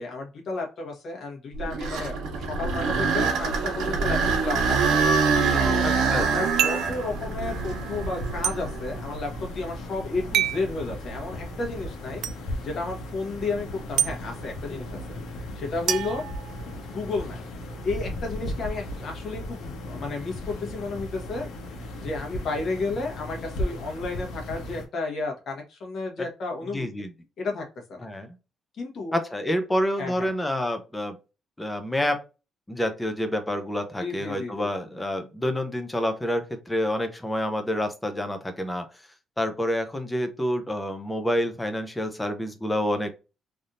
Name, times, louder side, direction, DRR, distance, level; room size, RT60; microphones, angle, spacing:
voice 1, 0.0-4.8 5.0-5.1 5.6-12.2 12.6-15.2 15.5-16.2 16.9-17.4 17.8-27.1 27.4-28.1 28.8-29.2 30.0-30.3 34.0-34.7, left 3 dB, 45° left, 1 dB, 1.1 m, -32 dB
sound 1, 1.5-9.6 10.2-10.3 11.0-11.2 14.7-15.0, right 5 dB, 90° right, 1.1 m, -25 dB
voice 2, 5.8-6.3 26.7-27.1 28.0-28.4 29.1-31.2 31.6-32.2 32.7-38.8 39.4-43.1, left 1 dB, 5° left, 7 dB, 0.5 m, -28 dB
sound 2, 6.6-7.0 8.4-8.6 10.3-10.6 12.2-12.4 14.0-14.1 15.9-17.0, right 10 dB, 65° right, 0.3 m, -26 dB
sound 3, 6.8-24.8, left 1 dB, 85° left, 0.9 m, -36 dB
3.4 x 2.7 x 2.4 m, 0.30 s
cardioid pair, 175°, 0 cm